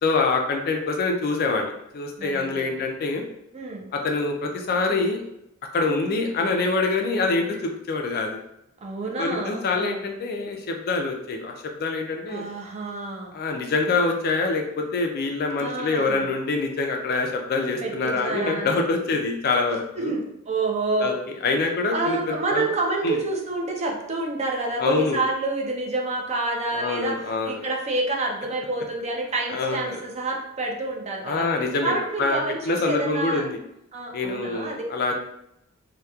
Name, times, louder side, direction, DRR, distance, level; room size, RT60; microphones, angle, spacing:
voice 1, 0.0-3.2 3.9-5.2 5.7-8.4 9.2-11.5 11.8-12.5 13.3-20.1 21.0-21.1 21.4-22.7 23.0-23.2 24.8-25.2 26.7-27.6 29.5-30.0 31.2-32.4 32.7-33.5 34.1-35.2, left 3 dB, 45° left, 3 dB, 0.3 m, -25 dB
voice 2, 2.2-2.9 3.5-3.9 5.9-6.1 8.8-10.0 12.3-13.3 15.6-16.3 17.8-19.1 20.0-21.2 21.9-27.2 27.4-31.5 31.8-33.5 33.9-34.8, right 2 dB, 30° right, 0 dB, 0.4 m, -28 dB
2.8 x 2.1 x 2.2 m, 0.79 s
head